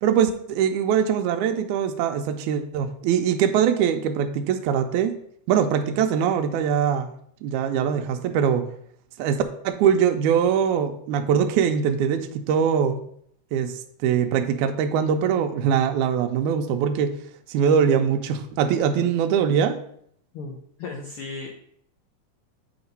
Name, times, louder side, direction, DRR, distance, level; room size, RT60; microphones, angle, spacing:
voice 1, 0.0-5.2 5.5-7.1 7.4-8.7 9.2-13.0 13.5-13.7 14.0-17.1 17.5-19.8, right 8 dB, 85° right, 6 dB, 2.0 m, -22 dB
voice 2, 20.3-21.5, left 4 dB, 80° left, 1 dB, 1.2 m, -35 dB
8.0 x 2.9 x 5.2 m, 0.68 s
omnidirectional pair, 3.4 m